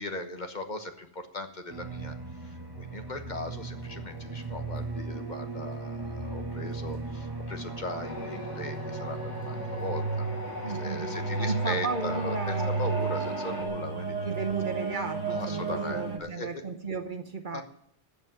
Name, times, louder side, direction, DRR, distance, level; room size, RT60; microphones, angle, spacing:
voice 1, 0.0-2.1 2.4-14.1 15.3-16.6 17.5-17.6, left 2 dB, 45° left, 6 dB, 1.3 m, -39 dB
sound 1, 1.7-16.2, right 4 dB, 20° right, 1.3 m, -34 dB
sound 2, 8.0-13.7, left 1 dB, 85° left, 3.0 m, -38 dB
voice 2, 10.6-12.9 14.1-17.6, right 4 dB, 50° right, 8 dB, 1.0 m, -35 dB
15.0 x 5.5 x 9.2 m, 0.67 s
omnidirectional pair, 1.1 m